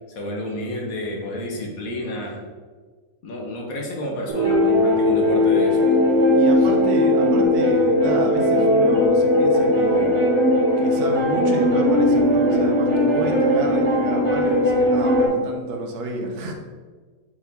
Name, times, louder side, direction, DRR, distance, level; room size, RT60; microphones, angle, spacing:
voice 1, 0.1-2.4 3.2-5.9, left 1 dB, 65° left, -1 dB, 1.6 m, -30 dB
sound 1, 4.3-15.3, left 1 dB, 50° right, 2.1 m, -18 dB
voice 2, 6.3-10.1 10.8-16.5, right 2 dB, 85° right, 2 dB, 1.5 m, -30 dB
7.2 x 4.4 x 3.5 m, 1.4 s
omnidirectional pair, 1.6 m